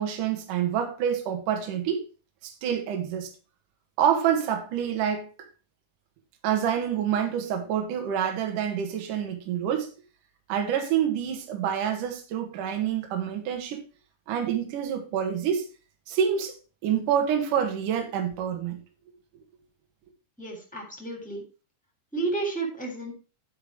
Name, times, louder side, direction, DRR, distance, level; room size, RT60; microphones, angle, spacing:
voice 1, 0.0-2.0 2.4-3.3 4.0-5.3 6.4-9.9 10.5-13.8 14.3-15.7 16.1-16.6 16.8-18.8, right 8 dB, 65° right, 2.9 m, -27 dB
voice 2, 20.4-21.4 22.1-23.1, right 3 dB, ahead, 2.8 m, -31 dB
10.5 x 5.5 x 4.8 m
omnidirectional pair, 4.5 m